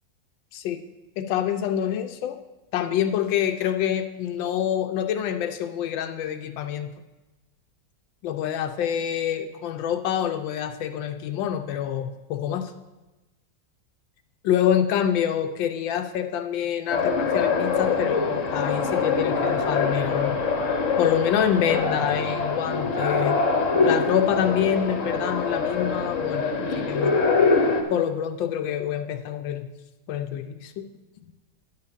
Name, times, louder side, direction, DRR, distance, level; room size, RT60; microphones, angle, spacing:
voice 1, 1.2-2.4 2.7-6.9 8.2-12.7 14.4-20.4 21.0-23.4 23.7-27.1 27.9-29.7 30.1-30.8, left 9 dB, 80° left, 6 dB, 1.3 m, -26 dB
sound 1, 16.9-27.8, left 4 dB, 50° left, 1.2 m, -24 dB
9.7 x 5.6 x 6.6 m, 1.1 s
omnidirectional pair, 2.0 m